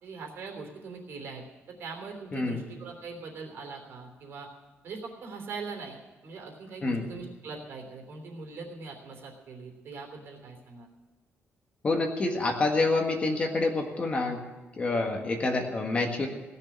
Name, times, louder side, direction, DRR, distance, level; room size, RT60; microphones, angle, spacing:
voice 1, 0.0-1.4 1.8-4.5 4.8-10.9, right 4 dB, 60° right, 2 dB, 3.2 m, -41 dB
voice 2, 2.3-2.7 6.8-7.1 11.8-14.4 14.8-16.3, left 3 dB, 30° left, 3 dB, 1.6 m, -27 dB
17.5 x 6.7 x 9.8 m, 1.2 s
cardioid pair, 170°, 4 cm